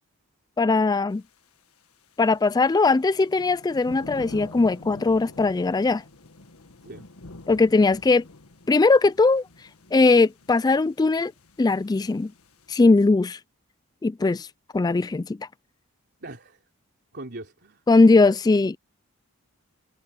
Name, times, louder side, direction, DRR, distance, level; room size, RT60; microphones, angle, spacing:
voice 1, 0.6-1.2 2.2-6.0 7.5-8.2 8.7-9.4 9.9-11.3 11.6-12.3 12.7-13.4 14.0-14.5 14.7-15.5 17.9-18.8, left 3 dB, 20° left, 0.3 m, -20 dB
sound 1, 2.2-12.7, left 2 dB, 80° left, 1.6 m, -45 dB
voice 2, 16.2-16.6 17.1-18.1, right 2 dB, 50° right, 3.5 m, -41 dB
head